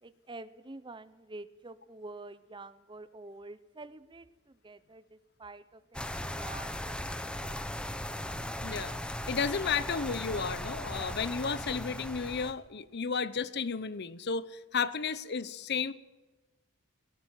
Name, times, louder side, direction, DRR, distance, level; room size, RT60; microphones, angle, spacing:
voice 1, 0.0-7.6, right 2 dB, 20° right, 14 dB, 0.7 m, -48 dB
sound 1, 5.9-12.5, left 1 dB, 5° left, 1.0 m, -38 dB
voice 2, 8.6-9.0 9.3-15.9, left 5 dB, 50° left, 17 dB, 0.7 m, -33 dB
17.5 x 17.0 x 9.1 m, 1.2 s
head